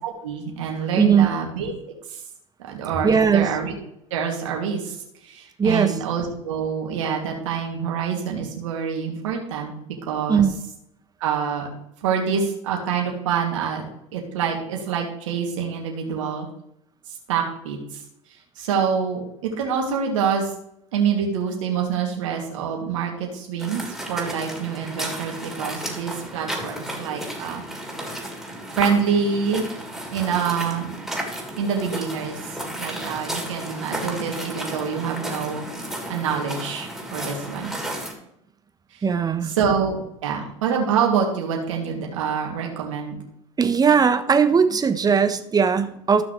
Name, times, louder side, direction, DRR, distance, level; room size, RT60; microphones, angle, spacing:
voice 1, 0.0-2.2 2.6-3.7 4.1-5.0 5.2-9.7 10.1-10.4 11.2-11.7 12.0-13.8 14.1-16.5 17.1-18.0 18.6-20.5 20.9-27.6 28.7-29.7 30.1-31.0 31.6-35.6 36.1-37.7 38.9-39.0 39.4-43.2, right 6 dB, 75° right, 0 dB, 2.7 m, -26 dB
voice 2, 1.0-1.3 3.0-3.4 5.6-5.9 10.3-10.6 39.0-39.5 43.6-46.2, right 6 dB, 25° right, 8 dB, 1.1 m, -18 dB
sound 1, 23.6-38.1, right 1 dB, ahead, 3.5 m, -33 dB
15.0 x 6.1 x 3.3 m, 0.78 s
hypercardioid pair, 80°, 16 cm